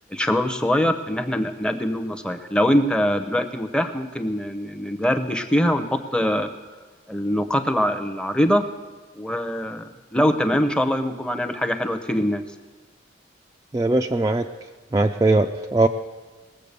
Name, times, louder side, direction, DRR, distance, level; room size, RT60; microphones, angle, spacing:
voice 1, 0.1-6.5 7.1-8.6 9.2-12.4, equal, 5° left, 8 dB, 0.7 m, -23 dB
voice 2, 13.7-14.5 14.9-15.9, right 2 dB, 20° right, 4 dB, 0.3 m, -20 dB
19.5 x 7.6 x 6.7 m, 1.3 s
head